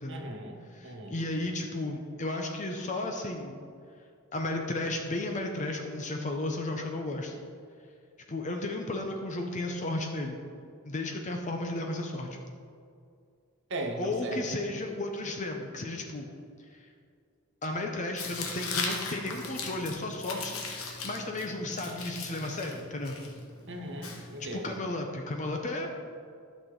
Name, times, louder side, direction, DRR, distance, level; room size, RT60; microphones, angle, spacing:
voice 1, 0.1-1.2 13.7-14.4 23.7-24.8, right 1 dB, 60° right, 2 dB, 1.3 m, -38 dB
voice 2, 0.7-3.6 4.3-7.3 8.3-10.4 10.9-12.4 14.0-16.3 16.8-16.9 17.6-23.2 24.5-25.9, left 2 dB, 35° left, 3 dB, 0.7 m, -34 dB
Tearing, 18.2-24.8, left 4 dB, 75° left, 1.2 m, -38 dB
12.0 x 6.2 x 3.9 m, 2.3 s
head